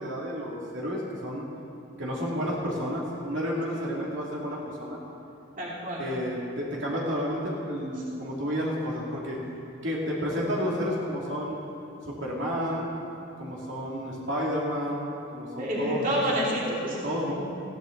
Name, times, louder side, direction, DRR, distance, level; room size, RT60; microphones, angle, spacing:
voice 1, 0.0-1.5 2.0-5.0 6.0-9.4 9.8-11.6 12.1-12.9 13.4-16.3 17.0-17.3, equal, 60° right, -4 dB, 2.6 m, -31 dB
voice 2, 5.6-6.0 15.6-17.0 17.2-17.3, equal, 40° right, -5 dB, 2.7 m, -29 dB
20.0 x 15.5 x 3.9 m, 2.8 s
head